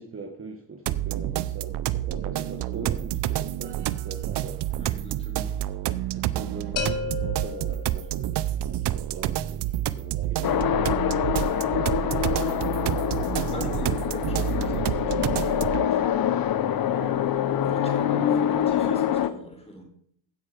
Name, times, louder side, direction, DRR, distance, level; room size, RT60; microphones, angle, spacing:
voice 1, 0.0-4.6 5.9-12.5 13.1-13.8 16.8-18.3, right 3 dB, 25° right, 3 dB, 1.4 m, -41 dB
sound 1, 0.9-15.9, right 13 dB, 55° right, 0.7 m, -29 dB
voice 2, 4.7-5.5 13.2-16.0 17.6-19.8, equal, 10° left, 2 dB, 4.1 m, -42 dB
sound 2, 6.8-8.6, left 6 dB, 60° left, 1.9 m, -33 dB
sound 3, 10.4-19.3, left 9 dB, 45° left, 0.9 m, -25 dB
15.5 x 5.6 x 5.0 m, 0.65 s
cardioid pair, 90°, 50 cm